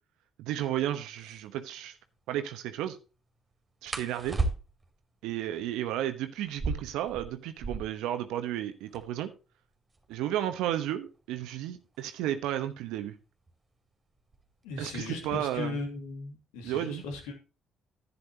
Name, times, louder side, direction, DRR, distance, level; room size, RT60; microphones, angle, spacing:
voice 1, 0.4-1.9 2.3-3.0 3.8-4.4 5.2-9.3 10.1-13.2 14.8-15.7 16.6-17.0, right 12 dB, 75° right, 1.0 m, -33 dB
sound 1, 1.2-1.4 3.9-5.0 6.4-8.1 8.4-8.5 8.7-9.3 9.9-12.5 13.5-13.8 14.2-14.6 15.0-15.7, right 3 dB, 30° right, 2.6 m, -36 dB
voice 2, 14.6-17.3, left 3 dB, 80° left, 2.3 m, -37 dB
11.0 x 9.8 x 2.9 m
hypercardioid pair, 50°, 0 cm